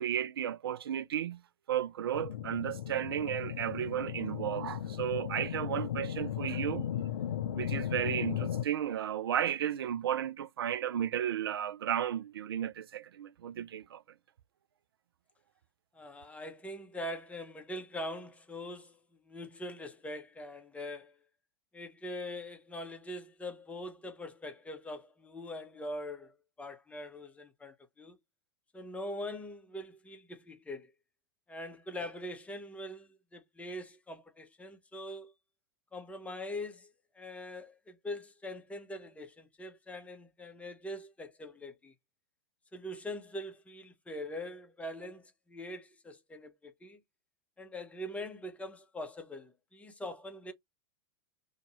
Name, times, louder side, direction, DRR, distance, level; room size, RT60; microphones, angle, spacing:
voice 1, 0.0-1.4 1.7-6.9 7.5-14.0, right 10 dB, 80° right, 0.4 m, -34 dB
sound 1, 2.1-8.6, left 10 dB, 80° left, 0.5 m, -36 dB
voice 2, 15.9-19.0 19.2-21.1 21.7-28.2 28.7-30.9 31.5-35.3 35.9-41.9 42.7-47.0 47.6-50.5, left 1 dB, 10° left, 0.9 m, -43 dB
2.8 x 2.7 x 4.0 m
hypercardioid pair, 105°, 12 cm